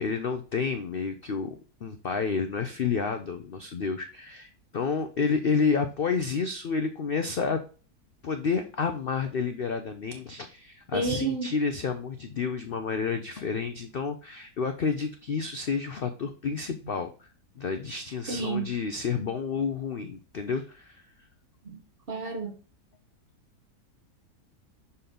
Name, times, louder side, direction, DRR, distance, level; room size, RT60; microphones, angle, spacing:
voice 1, 0.0-1.6 1.8-7.6 8.2-17.3 17.6-21.0, left 5 dB, 65° left, 0.5 m, -30 dB
voice 2, 10.9-11.5 18.3-18.7 22.1-22.5, right 3 dB, 40° right, 1.1 m, -29 dB
6.7 x 4.3 x 3.7 m
omnidirectional pair, 1.8 m